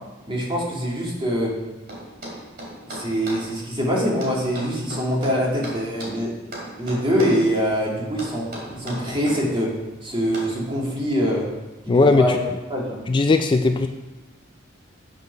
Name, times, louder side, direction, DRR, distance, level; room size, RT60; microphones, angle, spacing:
voice 1, 0.3-1.5 2.9-6.3 6.8-8.5 8.8-9.7 10.0-11.5 11.9-12.4 12.7-13.0, equal, 25° right, -4 dB, 2.4 m, -24 dB
sound 1, 1.9-3.5 4.2-6.2 6.5-7.4 8.2-9.4 10.3-10.6, right 1 dB, 50° right, 2.7 m, -35 dB
voice 2, 11.9-12.4 13.1-13.9, left 3 dB, 25° left, 6 dB, 0.3 m, -17 dB
8.6 x 6.6 x 5.9 m, 1.1 s
head